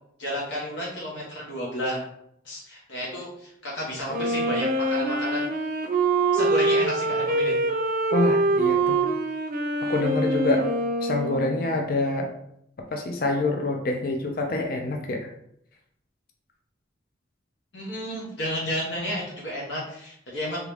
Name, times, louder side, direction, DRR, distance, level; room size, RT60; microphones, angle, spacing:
voice 1, 0.2-2.0 2.4-5.4 6.3-7.5 17.7-20.6, equal, 75° left, -5 dB, 1.0 m, -31 dB
Wind instrument woodwind instrument, 4.1-11.8, right 2 dB, 50° right, 0.5 m, -24 dB
voice 2, 8.1-9.0 9.9-10.7 11.0-12.3 12.9-15.3, left 2 dB, 50° left, 3 dB, 0.4 m, -26 dB
3.5 x 2.9 x 3.3 m, 0.74 s
head